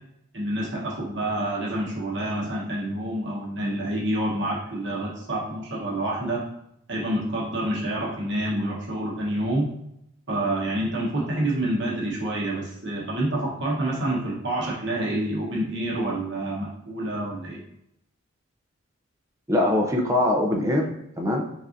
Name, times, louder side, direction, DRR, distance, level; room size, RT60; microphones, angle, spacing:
voice 1, 0.3-6.4 6.9-9.7 10.3-17.6, right 1 dB, 55° right, -4 dB, 1.1 m, -28 dB
voice 2, 19.5-21.7, left 1 dB, 15° right, 0 dB, 0.4 m, -23 dB
5.5 x 2.5 x 2.6 m, 0.78 s
head